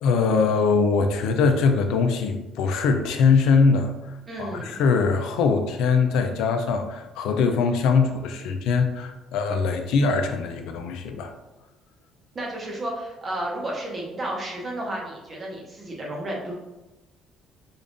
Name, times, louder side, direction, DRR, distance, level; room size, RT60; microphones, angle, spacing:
voice 1, 0.0-11.3, left 5 dB, 80° left, 6 dB, 0.4 m, -22 dB
voice 2, 4.3-4.8 12.3-16.6, right 1 dB, 25° right, -2 dB, 0.8 m, -32 dB
5.1 x 2.4 x 2.6 m, 1.0 s
cardioid pair, 165°, 0 cm